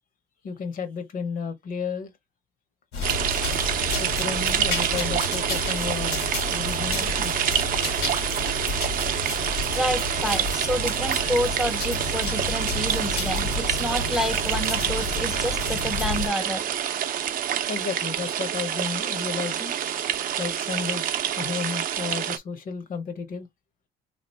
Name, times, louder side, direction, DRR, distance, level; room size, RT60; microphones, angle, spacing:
voice 1, 0.4-2.1 4.0-7.6 17.7-19.7 20.4-23.5, left 5 dB, 55° left, 1.0 m, -33 dB
sound 1, 2.9-16.3, left 3 dB, 75° left, 1.7 m, -31 dB
sound 2, 3.0-22.4, right 9 dB, 55° right, 0.5 m, -27 dB
voice 2, 9.7-16.6, equal, 5° right, 0.5 m, -29 dB
3.0 x 2.4 x 4.2 m
cardioid pair, 110°, 17 cm